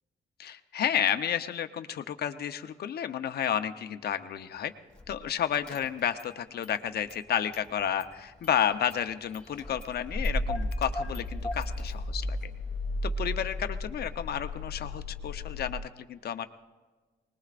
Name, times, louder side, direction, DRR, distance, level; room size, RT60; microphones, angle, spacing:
voice 1, 0.4-4.7 5.1-12.5 13.0-16.5, left 9 dB, 65° left, 9 dB, 0.9 m, -31 dB
Car / Engine starting, 5.0-5.2 5.5-6.3 6.6-7.7 8.0-15.8, left 1 dB, 5° left, 3.1 m, -35 dB
24.5 x 20.5 x 2.5 m, 1.3 s
cardioid pair, 110°, 18 cm